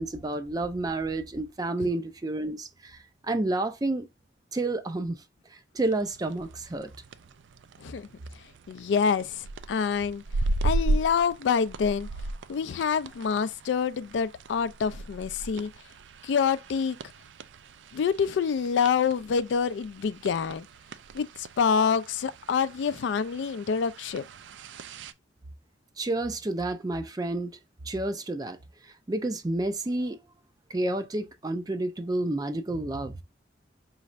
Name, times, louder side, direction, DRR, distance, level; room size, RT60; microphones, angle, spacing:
voice 1, 0.0-4.1 4.5-5.2 5.5-6.9 26.0-27.5 27.9-28.6 29.1-30.2 30.7-33.2, right 2 dB, 20° right, 0.4 m, -30 dB
sound 1, 5.8-25.1, right 2 dB, 85° right, 0.4 m, -36 dB
voice 2, 8.7-10.2 10.6-12.1 12.5-15.7 16.2-17.0 17.9-20.7 21.1-24.2, left 6 dB, 80° left, 0.3 m, -27 dB
5.1 x 3.2 x 2.5 m
head